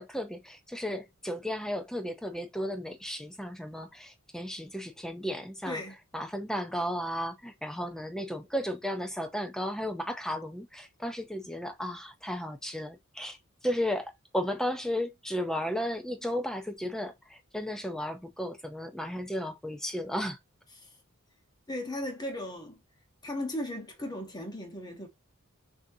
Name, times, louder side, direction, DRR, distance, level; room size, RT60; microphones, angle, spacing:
voice 1, 0.0-5.8 6.1-13.4 13.6-20.4, equal, ahead, 0.5 m, -34 dB
voice 2, 21.7-22.8 23.2-25.1, left 1 dB, 20° left, 1.0 m, -36 dB
6.1 x 2.7 x 2.7 m
head